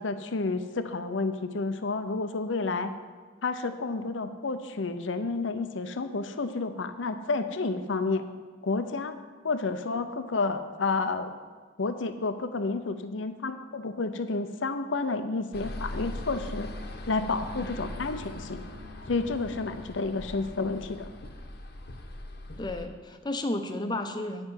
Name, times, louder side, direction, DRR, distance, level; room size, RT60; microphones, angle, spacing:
voice 1, 0.0-2.9 3.4-8.3 8.6-9.2 9.4-11.3 11.8-16.7 17.1-18.6 19.1-21.1, left 3 dB, 75° left, 9 dB, 0.7 m, -30 dB
sound 1, 15.5-22.9, left 1 dB, 55° left, 1.0 m, -40 dB
voice 2, 22.6-24.5, left 1 dB, 20° left, 6 dB, 0.7 m, -32 dB
9.7 x 5.8 x 8.1 m, 1.4 s
head